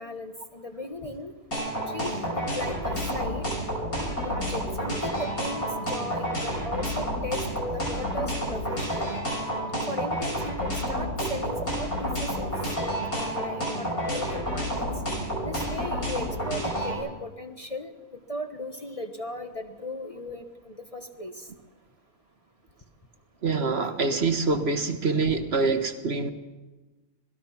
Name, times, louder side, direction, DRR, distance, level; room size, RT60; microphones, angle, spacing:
voice 1, 0.0-1.3 1.9-3.5 4.2-9.2 9.9-14.9 15.4-21.5, left 1 dB, 25° left, 5 dB, 1.3 m, -37 dB
sound 1, 1.5-16.9, equal, 70° left, 6.3 m, -29 dB
voice 2, 23.4-26.3, right 4 dB, 45° right, 8 dB, 1.3 m, -25 dB
26.5 x 18.5 x 5.9 m, 1.2 s
omnidirectional pair, 1.5 m